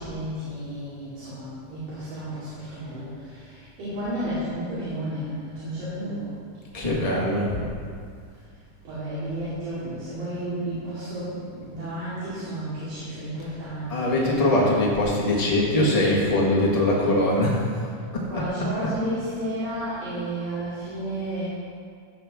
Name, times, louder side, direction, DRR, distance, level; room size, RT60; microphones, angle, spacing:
voice 1, 0.0-6.3 8.8-14.6 18.3-21.4, right 1 dB, 75° right, -12 dB, 4.1 m, -32 dB
voice 2, 6.7-7.7 13.9-17.6 18.1-18.4, left 1 dB, 55° left, -5 dB, 0.4 m, -22 dB
15.0 x 7.6 x 3.6 m, 2.2 s
omnidirectional pair, 3.6 m